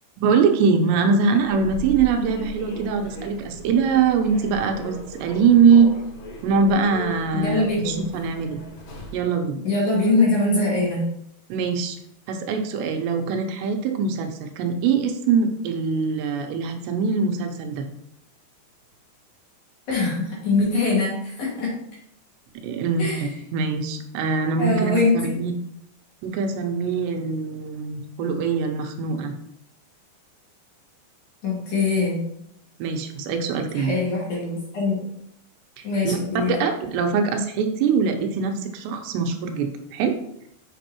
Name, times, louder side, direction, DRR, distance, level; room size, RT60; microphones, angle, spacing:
voice 1, 0.2-5.9 6.4-8.6 9.1-9.6 11.5-12.0 12.3-17.9 22.6-23.1 23.5-25.5 26.2-29.3 32.8-34.0 35.8-36.2 36.5-40.2, right 5 dB, 85° right, 5 dB, 2.9 m, -22 dB
Human voice / Subway metro underground, 1.3-9.3, right 1 dB, 65° left, 4.2 m, -38 dB
voice 2, 7.3-8.0 9.6-11.0 19.9-21.7 23.0-23.3 24.6-25.4 31.4-32.2 33.7-35.0 35.8-36.6, left 3 dB, 50° left, -6 dB, 3.1 m, -23 dB
7.5 x 6.2 x 2.9 m, 0.74 s
omnidirectional pair, 5.0 m